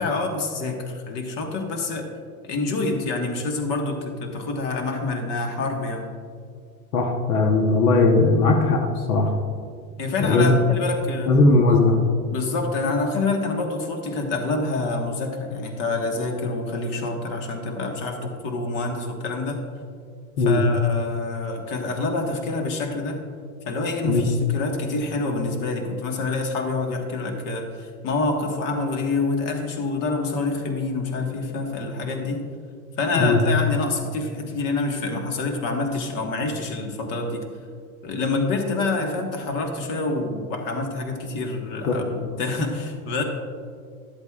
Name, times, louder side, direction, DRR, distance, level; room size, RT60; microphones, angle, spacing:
voice 1, 0.0-2.1 2.4-6.1 10.0-11.3 12.3-19.6 20.4-23.2 23.6-32.4 33.0-37.4 38.0-43.2, left 3 dB, 45° left, 3 dB, 1.5 m, -27 dB
voice 2, 6.9-8.8 9.1-9.3 10.2-10.5 11.3-12.0 20.4-20.6 24.0-24.2 33.1-33.4, left 3 dB, 80° left, 2 dB, 1.1 m, -18 dB
13.0 x 8.0 x 2.4 m, 2.1 s
supercardioid pair, 120°, 44 cm